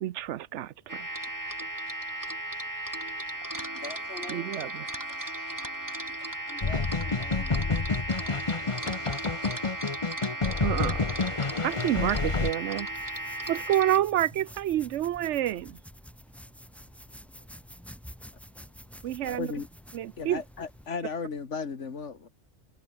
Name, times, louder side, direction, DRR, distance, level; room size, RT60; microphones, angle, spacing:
voice 1, 0.0-1.1 4.3-4.9 10.6-11.0 11.6-12.9 13.5-15.8 19.0-19.5 19.9-20.4, right 12 dB, 80° right, 0.9 m, -28 dB
sound 1, 0.9-14.0, right 1 dB, 15° right, 2.5 m, -36 dB
voice 2, 3.2-5.3 5.7-8.7, left 1 dB, 60° left, 6.7 m, -49 dB
voice 3, 5.2-5.6 19.2-19.7 20.2-22.3, left 5 dB, 85° left, 2.1 m, -36 dB
sound 2, 6.6-12.5, left 4 dB, 30° left, 1.0 m, -29 dB
sound 3, 11.6-20.9, equal, ahead, 2.6 m, -49 dB
omnidirectional pair, 1.2 m